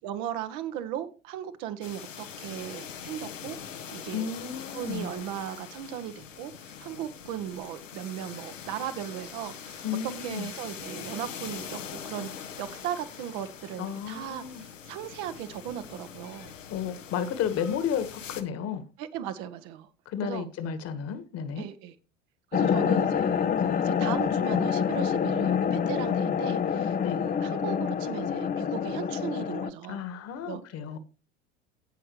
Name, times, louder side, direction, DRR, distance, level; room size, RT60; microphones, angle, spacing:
voice 1, 0.0-4.3 4.7-16.5 19.0-19.9 20.2-20.5 21.6-21.9 22.5-30.0 30.4-30.6, right 10 dB, 50° right, 1.4 m, -37 dB
sound 1, 1.8-18.4, left 8 dB, 80° left, 1.5 m, -43 dB
voice 2, 4.1-5.1 9.8-10.5 13.8-14.6 16.7-18.8 20.1-21.7 27.0-27.2 29.9-31.0, left 8 dB, 40° left, 1.8 m, -32 dB
sound 2, 22.5-29.7, left 7 dB, 20° left, 0.9 m, -27 dB
17.0 x 5.9 x 3.1 m
figure-of-eight pair, 75°, 38 cm